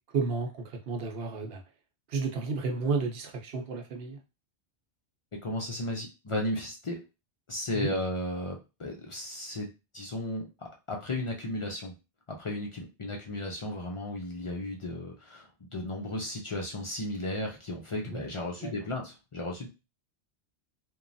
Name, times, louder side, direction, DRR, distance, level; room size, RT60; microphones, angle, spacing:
voice 1, 0.1-1.6 2.1-4.2 7.7-7.9 18.1-18.2 18.6-18.7, right 4 dB, 65° right, 3 dB, 0.8 m, -32 dB
voice 2, 5.4-7.0 7.5-12.0 12.3-19.7, left 1 dB, 50° left, 0 dB, 0.4 m, -35 dB
3.0 x 2.2 x 2.5 m, 0.28 s
omnidirectional pair, 1.2 m